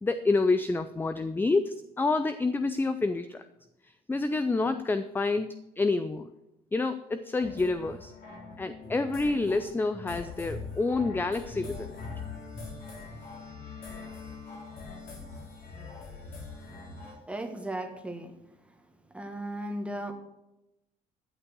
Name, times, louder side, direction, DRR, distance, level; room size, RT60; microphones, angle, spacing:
voice 1, 0.0-3.4 3.8-6.3 6.7-8.1 8.6-12.0, left 3 dB, 10° left, 11 dB, 0.4 m, -28 dB
sound 1, 7.4-17.1, left 4 dB, 55° left, 3.7 m, -42 dB
voice 2, 17.3-18.3 19.1-20.1, right 1 dB, 5° right, 5 dB, 1.5 m, -36 dB
11.0 x 6.3 x 6.1 m, 0.92 s
cardioid pair, 110°, 17 cm